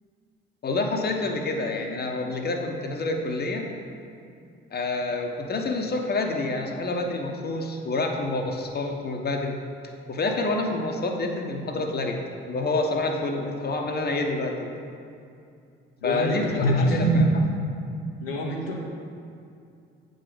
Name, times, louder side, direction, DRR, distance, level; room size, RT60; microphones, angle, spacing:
voice 1, 0.6-3.7 4.7-9.6 10.1-12.2 12.5-14.7 16.0-17.4, left 1 dB, 35° left, 3 dB, 1.0 m, -26 dB
voice 2, 16.0-16.9 18.2-18.8, left 2 dB, 80° left, -2 dB, 1.0 m, -29 dB
8.4 x 3.9 x 6.8 m, 2.5 s
figure-of-eight pair, 45°, 29 cm